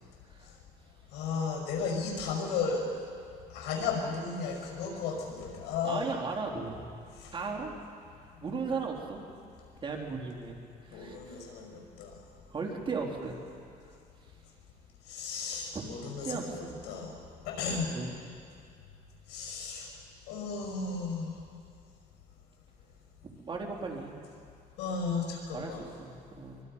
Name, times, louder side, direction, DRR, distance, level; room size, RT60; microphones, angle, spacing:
voice 1, 1.1-2.9 3.5-6.1 7.2-7.3 10.9-12.1 15.1-17.1 17.5-17.9 19.3-19.9 20.3-21.4 24.8-25.9, left 5 dB, 85° left, 2 dB, 5.5 m, -34 dB
voice 2, 5.8-6.8 7.3-7.7 8.4-9.2 9.8-10.6 10.8-11.4 12.5-13.4 15.7-15.9 16.2-16.8 17.9-18.2 23.3-24.2 25.5-25.7 26.0-26.6, right 4 dB, 30° right, 0 dB, 3.7 m, -36 dB
25.0 x 23.5 x 5.6 m, 2.3 s
cardioid pair, 110°, 17 cm